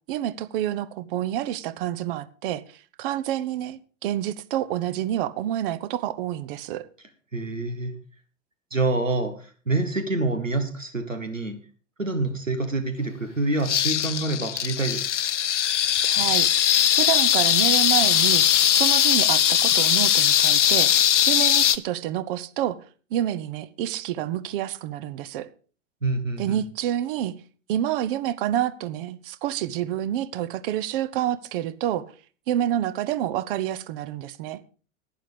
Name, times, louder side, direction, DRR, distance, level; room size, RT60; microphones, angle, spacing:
voice 1, 0.1-6.9 16.0-16.5 16.9-20.9 21.3-22.8 23.1-25.5 26.4-27.4 27.7-32.1 32.5-34.6, right 12 dB, 45° right, 1.0 m, -28 dB
voice 2, 7.3-7.9 8.7-11.6 12.0-15.2 26.0-26.6, right 2 dB, 90° right, 1.5 m, -27 dB
sound 1, 13.6-21.8, left 10 dB, 70° left, 0.8 m, -20 dB
11.5 x 9.9 x 5.0 m
figure-of-eight pair, 95°, 38 cm